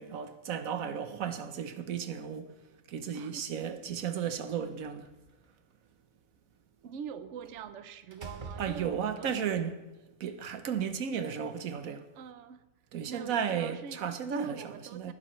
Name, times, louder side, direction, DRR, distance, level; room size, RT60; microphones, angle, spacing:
voice 1, 0.0-2.5 2.9-5.1 8.6-9.7 10.2-12.1 12.9-15.1, right 7 dB, 85° right, 1.3 m, -34 dB
voice 2, 3.1-3.5 6.8-9.5 12.1-12.6 13.1-15.1, right 7 dB, 65° right, 1.0 m, -44 dB
Slam, 4.4-5.3 7.4-7.7 8.1-9.3, right 3 dB, 40° right, 1.2 m, -46 dB
20.0 x 10.5 x 3.1 m
omnidirectional pair, 1.4 m